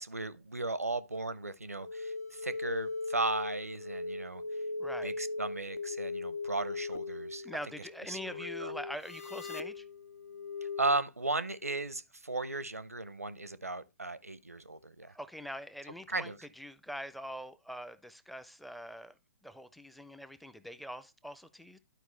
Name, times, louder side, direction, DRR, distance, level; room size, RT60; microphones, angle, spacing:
voice 1, 0.0-4.4 5.0-7.5 8.1-8.7 10.8-15.2 16.1-16.4, right 2 dB, 90° right, 0.6 m, -36 dB
sound 1, 1.8-11.0, left 3 dB, 75° left, 0.6 m, -39 dB
voice 2, 4.8-5.1 7.4-9.9 15.1-19.2 19.4-21.8, equal, ahead, 0.4 m, -44 dB
12.0 x 4.6 x 3.2 m
figure-of-eight pair, 120°, 8 cm